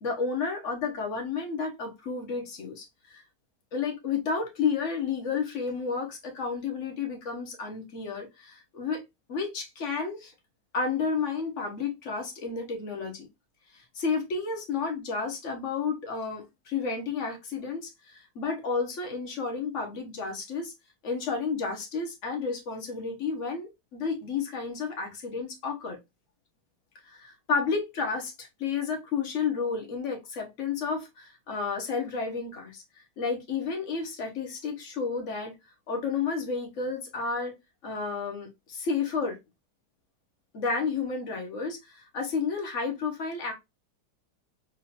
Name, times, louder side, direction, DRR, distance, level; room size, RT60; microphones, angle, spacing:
voice 1, 0.0-3.2 3.7-9.0 9.3-10.3 10.7-13.3 13.7-20.7 21.0-26.0 27.0-35.5 35.9-37.6 37.8-39.4 40.5-43.5, left 5 dB, 50° left, 1.2 m, -31 dB
3.7 x 3.0 x 2.8 m
omnidirectional pair, 2.0 m